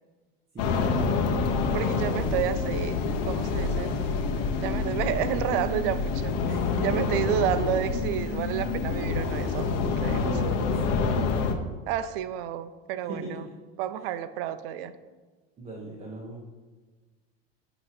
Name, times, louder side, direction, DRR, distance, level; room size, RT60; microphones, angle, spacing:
voice 1, 0.5-2.6 6.4-7.1 10.1-11.4 13.1-13.4 14.0-14.1 15.6-16.4, right 2 dB, 20° right, -4 dB, 1.0 m, -39 dB
sound 1, 0.6-11.5, left 4 dB, 50° left, 0.9 m, -27 dB
voice 2, 1.7-3.0 3.3-3.9 4.6-6.3 6.8-10.5 11.9-13.4 13.8-15.0, right 11 dB, 60° right, 12 dB, 0.6 m, -30 dB
8.4 x 3.0 x 5.9 m, 1.3 s
supercardioid pair, 135°, 31 cm